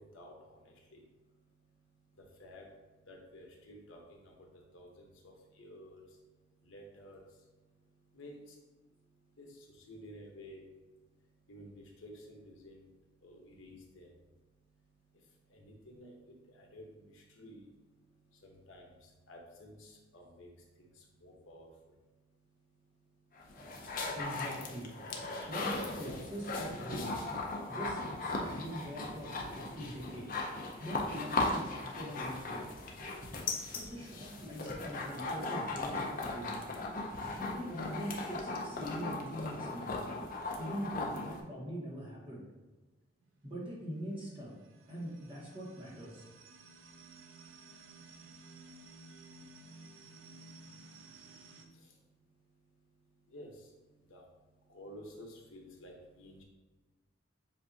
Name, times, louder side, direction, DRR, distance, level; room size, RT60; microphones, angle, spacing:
voice 1, 0.0-24.2 50.4-56.4, equal, 85° left, 0 dB, 0.9 m, -55 dB
sound 1, 23.4-41.4, left 2 dB, 45° left, 0.6 m, -38 dB
voice 2, 24.1-24.9 25.5-27.2 27.7-30.4 30.8-32.6 33.7-36.6 37.4-40.0 40.6-42.4 43.4-44.5 44.9-46.2, equal, 30° right, -4 dB, 1.2 m, -42 dB
sound 2, 43.2-51.7, right 3 dB, 85° right, 0.6 m, -55 dB
7.2 x 2.6 x 2.7 m, 1.2 s
head